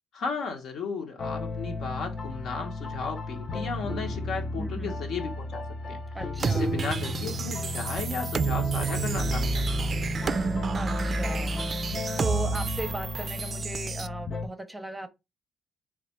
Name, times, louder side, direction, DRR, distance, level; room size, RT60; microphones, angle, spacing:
voice 1, 0.1-6.0 6.4-9.8, left 4 dB, 70° left, 1.0 m, -35 dB
sound 1, 1.2-14.5, left 2 dB, 40° left, 0.6 m, -33 dB
voice 2, 4.5-4.9 6.1-6.8 10.7-11.9 12.2-15.1, right 1 dB, 10° right, 0.6 m, -37 dB
sound 2, 6.4-14.1, right 6 dB, 45° right, 0.3 m, -30 dB
3.3 x 2.4 x 4.2 m
cardioid pair, 90°, 0 cm